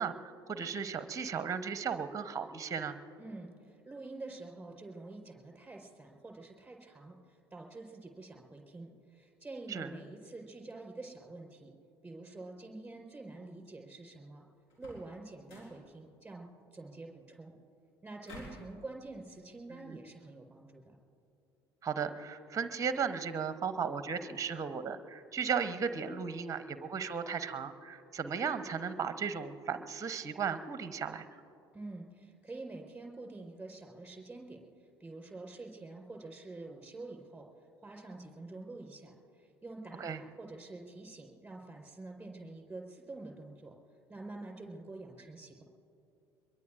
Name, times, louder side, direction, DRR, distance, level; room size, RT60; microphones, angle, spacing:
voice 1, 0.0-3.0 9.7-9.9 19.7-20.0 21.8-31.2 40.0-40.2, right 6 dB, 25° right, 11 dB, 0.9 m, -36 dB
voice 2, 3.2-11.7 12.0-14.4 14.8-16.5 16.7-17.5 18.0-20.9 31.7-34.7 35.0-37.5 37.8-43.7 44.1-45.6, right 2 dB, 10° right, 1 dB, 4.5 m, -47 dB
sound 1, 14.7-15.1 15.4-15.8 18.2-18.7, left 1 dB, 60° left, 4.4 m, -50 dB
23.5 x 23.0 x 2.6 m, 2.9 s
figure-of-eight pair, 60°, 13 cm